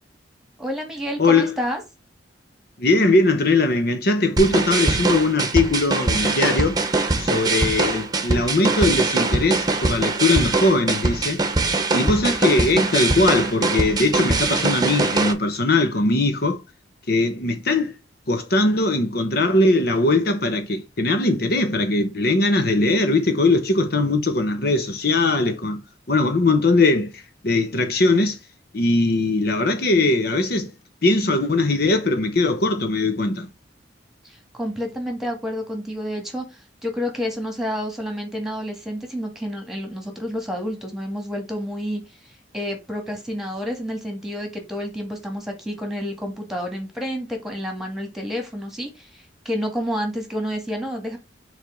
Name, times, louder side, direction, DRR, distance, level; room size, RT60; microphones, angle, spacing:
voice 1, 0.6-1.8 34.2-51.2, equal, 5° right, 1.9 m, -29 dB
voice 2, 1.2-1.5 2.8-6.8 7.2-11.4 11.9-16.6 17.1-17.9 18.3-25.8 26.1-28.4 28.7-30.7 31.0-33.5, left 2 dB, 55° left, 0.9 m, -20 dB
sound 1, 4.4-15.3, right 3 dB, 20° right, 0.9 m, -22 dB
6.6 x 3.4 x 4.6 m
head